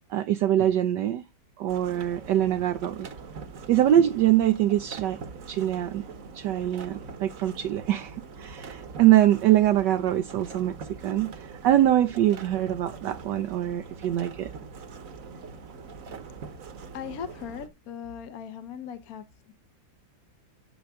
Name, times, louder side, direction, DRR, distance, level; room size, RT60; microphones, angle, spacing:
voice 1, 0.1-1.2 1.6-3.1 3.7-5.2 5.5-6.0 6.3-14.5, right 12 dB, 70° right, 1.2 m, -23 dB
sound 1, 1.7-17.7, right 5 dB, 50° right, 1.4 m, -43 dB
voice 2, 16.9-19.5, left 8 dB, 55° left, 1.2 m, -39 dB
10.5 x 6.2 x 3.6 m
omnidirectional pair, 2.0 m